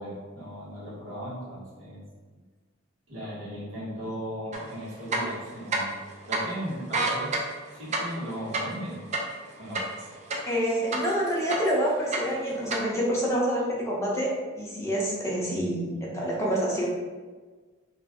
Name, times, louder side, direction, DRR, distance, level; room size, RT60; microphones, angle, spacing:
voice 1, 0.0-2.0 2.3-2.4 3.1-5.9 6.3-7.3 7.7-9.1 9.6-9.9, equal, 90° right, -7 dB, 1.2 m, -37 dB
sound 1, 4.5-4.6 5.0-6.0 6.3-6.4 6.8-10.6 10.9-11.8 12.1-12.8, right 2 dB, 35° right, 0.4 m, -29 dB
voice 2, 10.4-16.9, equal, 15° left, -4 dB, 0.6 m, -27 dB
2.5 x 2.4 x 3.4 m, 1.4 s
head